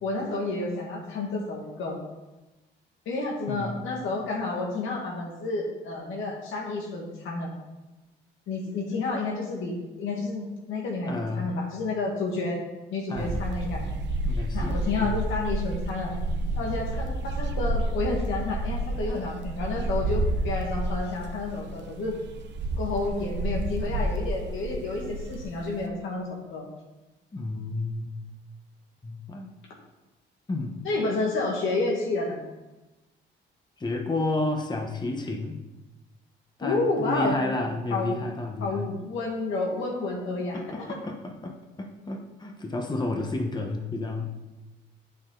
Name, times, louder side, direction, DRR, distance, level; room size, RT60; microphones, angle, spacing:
voice 1, 0.0-2.0 3.1-7.5 8.5-12.6 12.9-13.8 14.5-16.1 16.6-22.2 22.8-26.7 30.8-32.4 36.6-37.4 37.9-38.2 38.6-41.0, left 3 dB, 85° left, -2 dB, 2.1 m, -30 dB
voice 2, 3.5-4.1 11.0-11.6 13.1-13.4 14.2-15.1 27.3-28.1 29.0-29.5 30.5-30.8 33.8-35.6 36.6-38.9 40.5-44.3, left 2 dB, 20° left, 2 dB, 1.2 m, -31 dB
sound 1, 13.2-25.9, right 1 dB, 65° right, 0.9 m, -30 dB
8.9 x 6.6 x 4.0 m, 1.1 s
cardioid pair, 90°, 20 cm